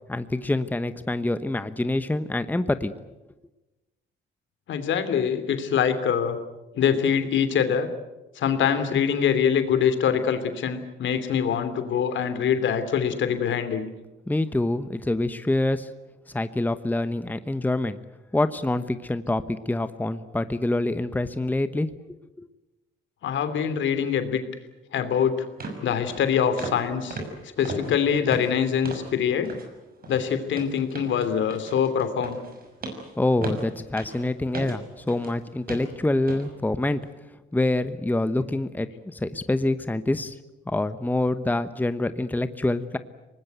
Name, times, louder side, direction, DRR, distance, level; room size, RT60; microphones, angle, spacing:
voice 1, 0.1-2.9 14.3-15.9 16.3-18.0 18.3-21.9 22.4-22.5 33.2-37.0 37.5-40.3 40.7-43.0, left 2 dB, 10° left, 11 dB, 1.0 m, -26 dB
voice 2, 4.7-6.4 6.7-7.9 8.4-13.8 23.2-24.4 24.9-25.3 25.8-27.2 27.6-29.5 30.1-32.4, left 8 dB, 70° left, 10 dB, 2.9 m, -24 dB
sound 1, 25.0-25.1 25.6-25.8 26.1-26.3 26.6-26.8 27.1-29.1 29.4-29.7 30.0-35.3 35.7-35.9 36.3-36.5 36.9-37.0, right 2 dB, 50° right, 6.0 m, -37 dB
24.0 x 19.5 x 9.2 m, 1.1 s
cardioid pair, 90°, 20 cm